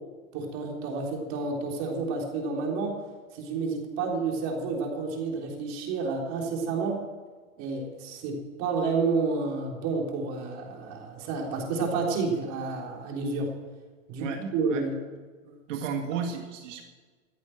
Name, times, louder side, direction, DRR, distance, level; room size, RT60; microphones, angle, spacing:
voice 1, 0.3-3.0 3.3-7.0 7.6-13.5 14.1-14.9 15.5-15.6, right 4 dB, 40° right, 0 dB, 3.7 m, -30 dB
voice 2, 15.7-16.8, right 6 dB, 65° right, 3 dB, 2.1 m, -33 dB
15.0 x 8.4 x 7.8 m, 1.4 s
supercardioid pair, 145°, 40 cm